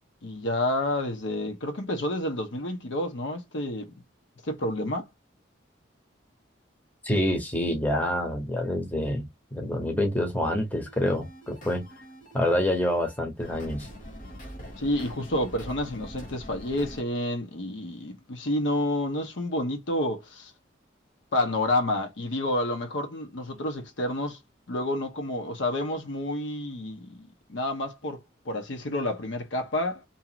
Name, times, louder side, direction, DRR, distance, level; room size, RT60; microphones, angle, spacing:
voice 1, 0.2-3.9 4.4-5.1 14.7-20.5 21.3-24.4 24.7-28.2 28.5-30.1, left 1 dB, 75° left, 0.8 m, -29 dB
voice 2, 7.0-11.8 12.3-13.9, left 1 dB, 10° left, 0.7 m, -27 dB
sound 1, 10.8-17.0, equal, 45° left, 1.0 m, -44 dB
2.8 x 2.4 x 2.8 m
head